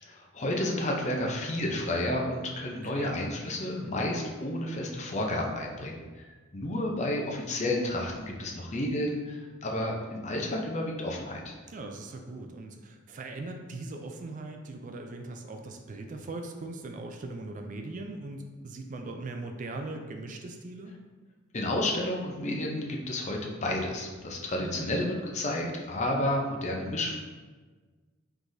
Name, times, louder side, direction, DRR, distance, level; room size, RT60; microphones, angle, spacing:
voice 1, 0.0-6.3 6.5-11.6 21.5-27.2, left 1 dB, 35° left, 0 dB, 0.6 m, -31 dB
voice 2, 2.8-3.2 11.7-20.9 24.5-24.9, right 2 dB, 40° right, 4 dB, 0.4 m, -40 dB
4.7 x 3.9 x 2.6 m, 1.4 s
head